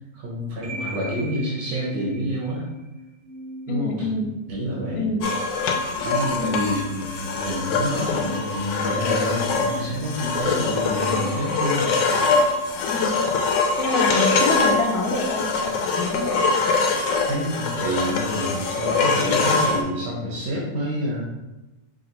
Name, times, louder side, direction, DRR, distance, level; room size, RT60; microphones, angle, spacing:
voice 1, 0.1-2.7 3.7-4.1 4.5-5.1 6.0-12.4 17.3-21.2, equal, 80° right, -6 dB, 1.7 m, -28 dB
sound 1, 0.6-12.7, right 1 dB, 60° right, 0.9 m, -41 dB
voice 2, 3.7-4.3 5.0-5.3 6.4-6.7 12.9-13.1 13.8-16.4, left 2 dB, 70° left, 1 dB, 1.0 m, -26 dB
sound 2, 5.2-19.8, left 4 dB, 85° left, 1.3 m, -23 dB
5.6 x 2.5 x 3.0 m, 1.0 s
omnidirectional pair, 1.9 m